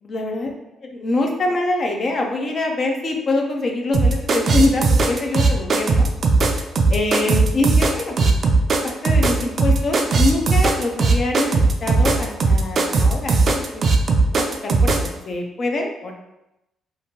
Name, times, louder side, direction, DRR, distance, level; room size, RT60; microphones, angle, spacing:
voice 1, 0.0-0.5 1.0-6.1 6.9-8.3 9.0-13.8 14.3-16.1, left 2 dB, 45° left, 1 dB, 0.6 m, -24 dB
sound 1, 3.9-15.1, right 3 dB, 50° right, 0.4 m, -17 dB
2.9 x 2.4 x 3.0 m, 0.92 s
cardioid pair, 90°, 0 cm